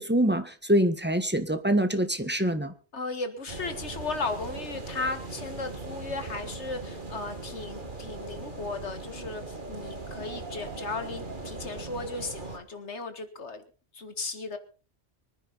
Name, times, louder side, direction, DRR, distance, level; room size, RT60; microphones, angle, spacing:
voice 1, 0.0-2.7, right 1 dB, 10° right, 8 dB, 1.5 m, -25 dB
voice 2, 2.9-13.6 13.9-14.6, left 3 dB, 80° left, 9 dB, 2.1 m, -36 dB
sound 1, 3.5-12.6, right 3 dB, 45° right, 2.2 m, -39 dB
24.0 x 10.0 x 4.2 m, 0.36 s
omnidirectional pair, 1.1 m